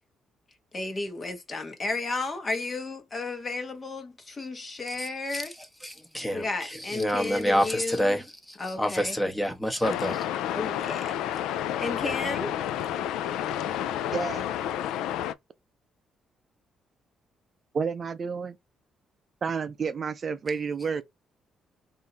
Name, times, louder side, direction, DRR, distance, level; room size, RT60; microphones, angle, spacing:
voice 1, 0.7-5.5 6.3-8.2 8.6-9.2 10.5-12.6, left 3 dB, 35° left, 1.3 m, -33 dB
voice 2, 5.0-5.4 5.8-10.2, equal, 5° left, 1.1 m, -28 dB
sound 1, 9.8-15.3, left 11 dB, 90° left, 0.4 m, -30 dB
voice 3, 14.1-14.5 17.7-18.6 19.4-21.0, right 5 dB, 45° right, 0.5 m, -30 dB
3.6 x 2.7 x 4.1 m
cardioid pair, 90°, 0 cm